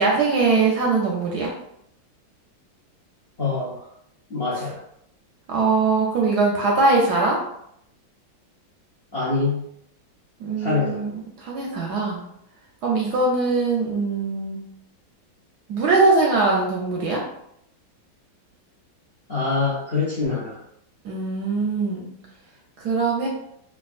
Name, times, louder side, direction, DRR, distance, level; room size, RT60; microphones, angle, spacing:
voice 1, 0.0-1.5 5.5-7.4 10.4-12.2 12.8-14.6 15.7-17.2 21.0-22.1 22.8-23.3, right 3 dB, 75° right, -2 dB, 1.0 m, -21 dB
voice 2, 3.4-3.9 4.3-4.8 9.1-9.7 10.6-11.0 19.3-20.6, left 4 dB, 55° left, -8 dB, 0.7 m, -25 dB
3.5 x 2.3 x 2.3 m, 0.74 s
omnidirectional pair, 2.1 m